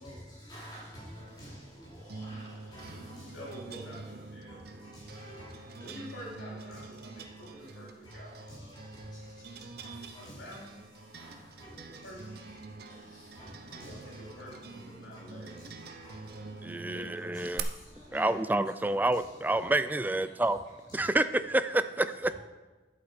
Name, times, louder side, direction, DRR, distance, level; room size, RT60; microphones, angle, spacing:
voice 1, 0.0-3.5 4.5-5.9 7.1-7.5 8.0-8.1 8.5-10.4 11.1-12.1 12.7-14.4 15.1-15.2 15.6-16.4 17.3-18.3 20.5-20.6 20.9-21.1, equal, 25° left, 4.3 m, -50 dB
sound 1, 1.1-17.6, right 4 dB, 55° right, 0.8 m, -46 dB
voice 2, 2.8-4.8 5.8-9.0 10.1-10.8 11.7-12.5 13.8-15.9 16.7-17.2 18.1-18.4 20.3-20.4, equal, 85° left, 3.8 m, -48 dB
voice 3, 16.6-17.7 18.1-20.6 20.9-22.3, right 2 dB, 10° right, 0.3 m, -28 dB
11.0 x 8.1 x 5.2 m
head